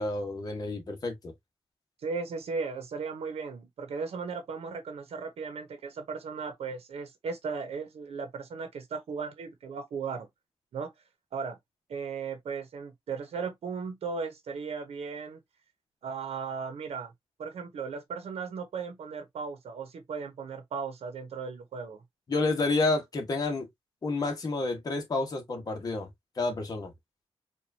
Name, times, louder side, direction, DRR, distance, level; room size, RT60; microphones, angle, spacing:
voice 1, 0.0-1.3 22.3-23.7 24.0-26.1 26.4-26.9, left 3 dB, 40° left, 1.2 m, -29 dB
voice 2, 2.0-10.3 10.7-10.9 11.3-11.6 11.9-15.4 16.0-17.1 17.4-22.0, right 5 dB, 90° right, 1.0 m, -36 dB
4.6 x 2.5 x 2.7 m
wide cardioid pair, 140°, 10 cm